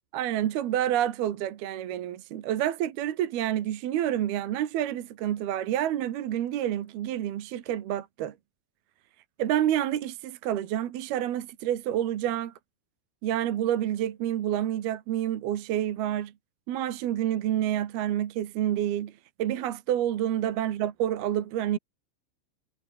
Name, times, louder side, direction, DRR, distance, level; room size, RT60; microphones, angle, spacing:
voice 1, 0.1-8.3 9.4-12.5 13.2-16.3 16.7-19.1 19.4-21.8, right 11 dB, 60° right, 3.0 m, -28 dB
omnidirectional pair, 5.9 m